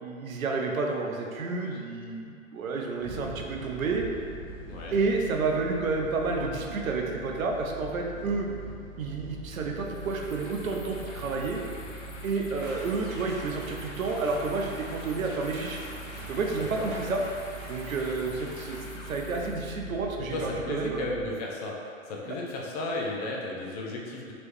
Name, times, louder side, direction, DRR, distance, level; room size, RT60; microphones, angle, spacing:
voice 1, 0.0-4.0 4.9-8.5 9.0-11.6 12.2-15.8 16.3-17.2 17.7-21.0, right 3 dB, 80° right, 1 dB, 0.6 m, -30 dB
sound 1, 3.0-21.3, right 2 dB, 30° right, 0.6 m, -42 dB
sound 2, 9.8-19.7, left 2 dB, 60° left, 0.7 m, -48 dB
sound 3, 12.6-18.8, right 1 dB, 50° right, 1.3 m, -46 dB
voice 2, 20.3-24.3, left 2 dB, 30° left, -3 dB, 0.4 m, -34 dB
3.1 x 3.0 x 3.0 m, 2.4 s
hypercardioid pair, 115°, 40 cm